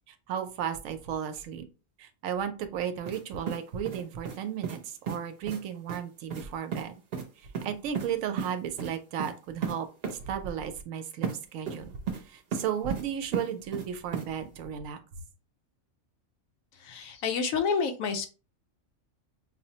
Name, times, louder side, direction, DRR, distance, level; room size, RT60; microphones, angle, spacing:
voice 1, 0.1-1.7 2.0-7.0 7.6-9.9 10.2-12.0 12.3-15.0, right 8 dB, 80° right, 8 dB, 1.0 m, -34 dB
sound 1, 3.1-3.2 3.5-4.4 4.6-4.8 5.1-5.2 5.5-5.6 5.9-6.0 6.3-6.4 6.7-6.8 7.1-7.2 7.5-8.1 8.4-8.5 8.8-8.9 9.2-9.3 9.6-9.7 10.0-10.1 11.2-11.3 11.7-12.2 12.5-13.0 13.3-13.9 14.1-14.3, right 6 dB, 55° right, 0.8 m, -33 dB
voice 2, 16.7-18.3, left 5 dB, 90° left, 7 dB, 1.1 m, -29 dB
5.5 x 2.0 x 2.8 m, 0.34 s
omnidirectional pair, 1.4 m